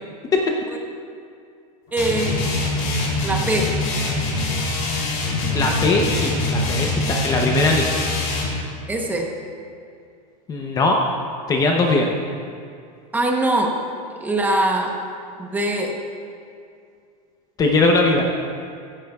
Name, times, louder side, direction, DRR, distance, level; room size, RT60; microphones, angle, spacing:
voice 1, 1.9-2.9 3.2-3.8 8.9-9.3 13.1-13.8 14.2-15.0 15.4-16.0, right 1 dB, 10° right, 1 dB, 0.9 m, -22 dB
sound 1, 2.0-8.6, left 2 dB, 40° left, 3.1 m, -23 dB
voice 2, 5.5-7.9 10.5-11.0 11.5-12.1 17.6-18.2, left 3 dB, 20° left, 1 dB, 0.7 m, -19 dB
16.0 x 14.5 x 2.4 m, 2.4 s
supercardioid pair, 165°, 20 cm